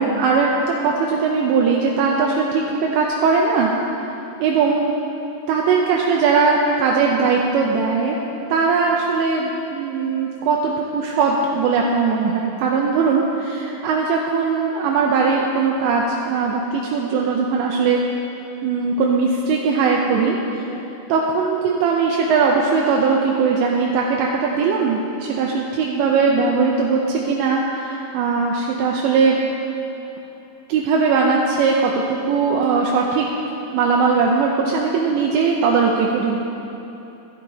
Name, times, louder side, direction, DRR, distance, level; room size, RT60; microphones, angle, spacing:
voice 1, 0.0-3.7 4.4-4.9 5.5-8.2 8.5-18.0 18.6-20.7 21.1-29.4 30.7-33.3 33.7-36.4, right 5 dB, 80° right, -1 dB, 2.9 m, -19 dB
11.5 x 11.5 x 4.1 m, 3.0 s
omnidirectional pair, 5.3 m